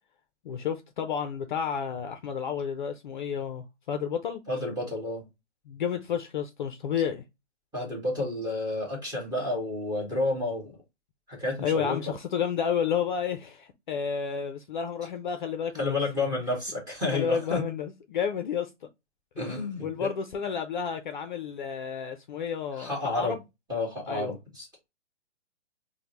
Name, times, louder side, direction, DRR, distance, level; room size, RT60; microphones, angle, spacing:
voice 1, 0.4-4.4 5.7-7.2 11.6-16.0 17.1-18.7 19.8-23.4 24.1-24.4, left 7 dB, 45° left, 0.5 m, -31 dB
voice 2, 4.5-5.3 7.7-10.8 11.3-12.0 15.8-17.6 19.4-20.1 22.3-22.4 22.7-23.4 23.7-24.7, left 2 dB, 10° right, 1.4 m, -30 dB
5.0 x 2.1 x 2.9 m
hypercardioid pair, 140°, 35 cm